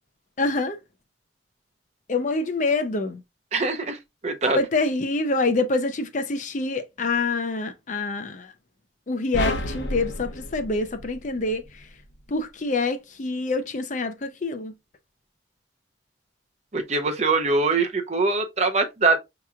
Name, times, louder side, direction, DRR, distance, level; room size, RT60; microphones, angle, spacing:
voice 1, 0.4-0.8 2.1-3.2 4.6-8.5 9.1-11.6 12.3-14.7, left 3 dB, 45° left, 0.5 m, -26 dB
voice 2, 3.5-4.6 16.7-19.2, right 3 dB, 35° right, 0.6 m, -23 dB
sound 1, 9.3-11.7, left 1 dB, 75° left, 0.9 m, -30 dB
5.9 x 2.9 x 2.4 m
head